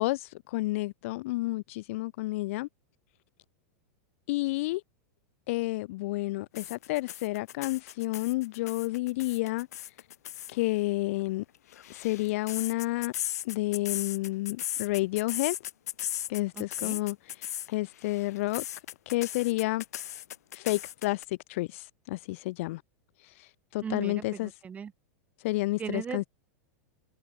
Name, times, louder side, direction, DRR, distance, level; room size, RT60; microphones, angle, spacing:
voice 1, 0.0-2.7 4.3-4.8 5.5-9.7 10.5-11.4 11.9-13.1 13.4-15.6 16.3-17.2 17.7-18.6 19.1-19.8 20.5-21.2 21.5-22.8 23.7-24.5 25.4-26.3, left 20 dB, 55° left, 5.3 m, -30 dB
sound 1, 6.5-10.5 11.5-17.7 18.0-21.2, left 12 dB, 85° left, 6.2 m, -37 dB
voice 2, 16.5-17.0 23.8-24.9 25.8-26.2, right 7 dB, 15° right, 4.2 m, -38 dB
supercardioid pair, 150°, 8 cm